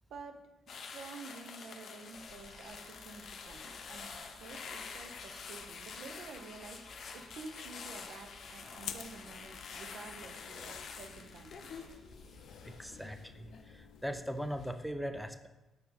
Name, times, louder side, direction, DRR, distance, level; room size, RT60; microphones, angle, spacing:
voice 1, 0.1-0.4 0.7-4.1 4.4-6.8 7.1-11.9, right 4 dB, 70° right, 6 dB, 0.7 m, -50 dB
sound 1, 0.7-14.0 14.4-14.7, left 5 dB, 55° left, 0.7 m, -48 dB
sound 2, 2.1-13.1, equal, 45° right, 2.2 m, -60 dB
sound 3, 8.8-14.5, left 9 dB, 75° left, 0.3 m, -51 dB
voice 2, 12.6-15.5, equal, ahead, 7 dB, 0.4 m, -40 dB
6.6 x 4.5 x 4.2 m, 1.0 s
cardioid pair, 90°, 0 cm